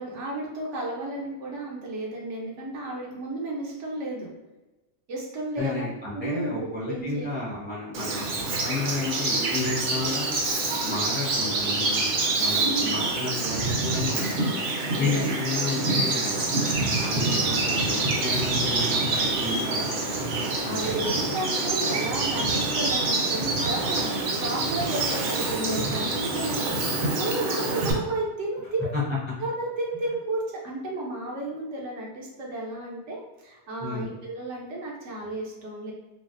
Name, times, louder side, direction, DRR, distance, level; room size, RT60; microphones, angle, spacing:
voice 1, 0.0-4.3 5.1-5.9 6.1-7.6 12.6-13.1 14.9-15.3 20.6-28.9 29.4-35.9, right 2 dB, 85° right, -3 dB, 1.0 m, -33 dB
voice 2, 5.6-10.3 10.8-12.1 12.4-14.4 15.0-16.4 17.0-20.0 20.6-20.9 28.9-29.0 33.8-34.1, left 3 dB, 15° right, -5 dB, 0.5 m, -32 dB
Bird vocalization bird call bird song, 7.9-27.9, right 2 dB, 60° right, 0.7 m, -26 dB
3.9 x 2.0 x 2.5 m, 1.1 s
omnidirectional pair, 1.2 m